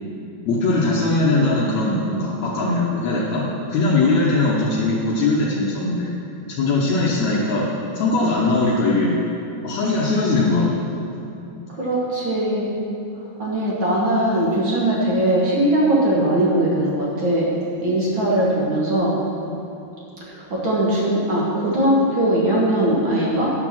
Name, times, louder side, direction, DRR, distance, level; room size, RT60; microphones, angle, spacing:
voice 1, 0.5-3.4 3.7-6.1 6.6-7.7 7.9-9.2 9.6-10.7 19.5-19.6, left 2 dB, 90° left, -4 dB, 1.6 m, -20 dB
voice 2, 11.7-12.7 13.4-17.5 17.8-19.2 20.3-23.5, right 1 dB, 60° right, -6 dB, 1.2 m, -20 dB
10.5 x 6.1 x 6.0 m, 2.8 s
omnidirectional pair, 4.6 m